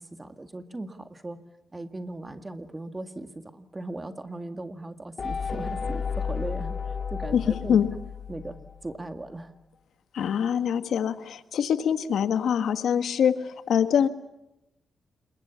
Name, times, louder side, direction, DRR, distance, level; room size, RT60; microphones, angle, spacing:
voice 1, 0.0-1.4 1.7-7.8 8.3-9.5, right 2 dB, 20° right, 9 dB, 1.9 m, -38 dB
sound 1, 5.2-8.9, left 6 dB, 50° left, 1.8 m, -32 dB
voice 2, 10.1-14.1, left 8 dB, 80° left, 11 dB, 1.5 m, -24 dB
27.5 x 22.5 x 7.1 m, 0.87 s
cardioid pair, 95°, 0 cm